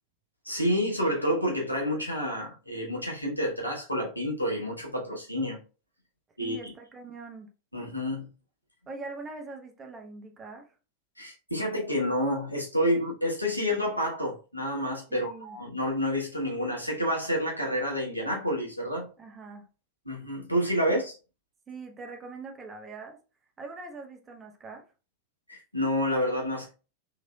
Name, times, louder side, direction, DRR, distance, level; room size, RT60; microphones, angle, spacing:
voice 1, 0.4-5.6 6.4-6.6 7.7-8.3 11.2-19.1 20.1-21.1 25.5-26.7, equal, 90° left, 1.0 m, -29 dB
voice 2, 6.4-7.5 8.9-10.7 15.1-15.6 19.2-19.7 20.9-21.0 21.7-23.2 23.6-24.8, right 3 dB, 20° right, 0.8 m, -42 dB
3.8 x 3.3 x 2.3 m
figure-of-eight pair, 90°, 0 cm